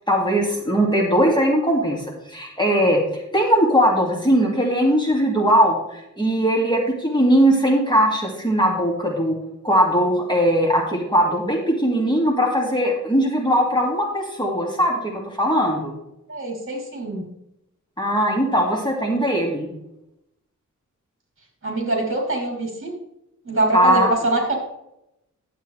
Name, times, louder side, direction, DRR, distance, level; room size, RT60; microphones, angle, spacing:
voice 1, 0.1-9.4 9.6-15.9 18.0-19.7 23.7-24.1, equal, 15° left, -1 dB, 2.0 m, -20 dB
voice 2, 16.3-17.3 21.6-22.9 23.5-24.6, right 2 dB, 40° right, 0 dB, 3.0 m, -24 dB
11.5 x 8.1 x 3.2 m, 0.85 s
wide cardioid pair, 100°, 31 cm